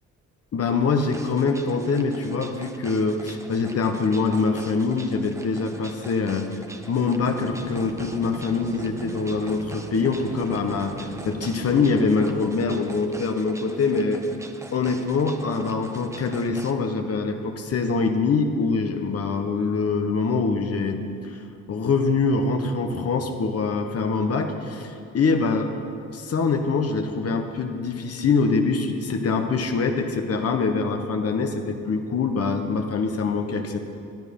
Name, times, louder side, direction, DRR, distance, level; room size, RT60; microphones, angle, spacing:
voice 1, 0.5-6.5 6.9-14.2 14.7-21.4 21.7-25.7 26.1-33.8, left 4 dB, 50° left, 5 dB, 1.4 m, -24 dB
sound 1, 1.0-16.7, right 2 dB, 10° right, 1.0 m, -44 dB
sound 2, 7.2-12.4, right 1 dB, 85° right, 3.4 m, -39 dB
17.0 x 11.0 x 5.5 m, 2.5 s
cardioid pair, 90°, 30 cm